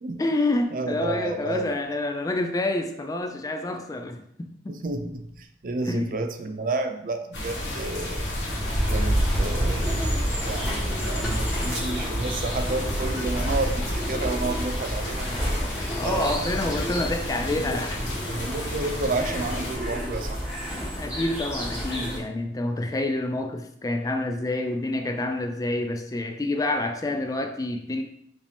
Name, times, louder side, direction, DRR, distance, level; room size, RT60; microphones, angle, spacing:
voice 1, 0.2-4.8 5.8-6.2 15.6-18.2 21.0-28.0, left 2 dB, 20° left, 5 dB, 0.3 m, -28 dB
voice 2, 0.7-1.7 4.7-8.3 8.9-10.1 10.4-15.3 16.0-16.5 17.7-17.8 18.3-20.4, right 3 dB, 50° right, 7 dB, 0.4 m, -31 dB
sound 1, 7.3-19.8, equal, 80° left, 1.4 m, -29 dB
sound 2, 8.6-22.2, equal, 5° right, 1.3 m, -32 dB
5.0 x 2.7 x 3.4 m, 0.69 s
head